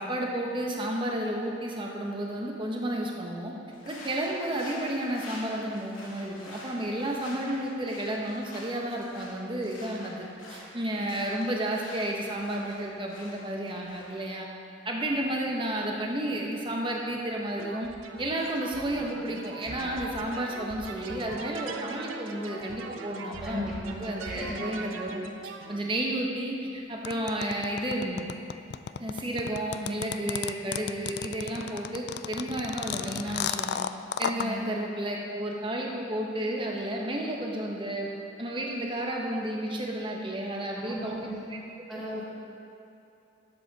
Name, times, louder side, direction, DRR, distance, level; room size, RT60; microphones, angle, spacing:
voice 1, 0.0-3.5 3.9-14.5 14.8-17.9 18.2-25.2 25.7-28.3 29.0-33.8 34.2-38.1 38.4-41.2 41.9-42.0, right 1 dB, 25° right, -1 dB, 1.1 m, -32 dB
sound 1, 3.7-14.3, left 1 dB, 90° left, 2.5 m, -48 dB
sound 2, 17.6-25.8, right 4 dB, 85° right, 0.7 m, -41 dB
voice 2, 23.4-24.6 34.3-34.7 40.8-41.4 41.9-42.3, left 1 dB, 5° right, -7 dB, 1.9 m, -37 dB
sound 3, 27.0-34.5, left 8 dB, 55° left, 0.3 m, -32 dB
12.5 x 7.6 x 4.1 m, 2.8 s
head